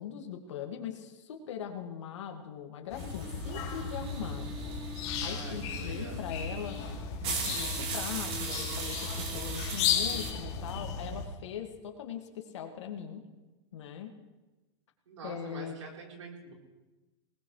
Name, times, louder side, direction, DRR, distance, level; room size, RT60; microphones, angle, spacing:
voice 1, 0.0-4.6 5.2-6.8 7.3-13.2 13.7-14.1 15.2-15.9, left 8 dB, 75° left, 4 dB, 2.1 m, -41 dB
sound 1, 2.9-11.3, left 6 dB, 45° left, 2.7 m, -35 dB
sound 2, 3.0-10.3, right 4 dB, 40° right, 3.9 m, -39 dB
voice 2, 5.2-6.3 15.1-16.5, right 4 dB, 85° right, -1 dB, 4.2 m, -45 dB
20.0 x 19.0 x 3.3 m, 1.1 s
hypercardioid pair, 115°, 15 cm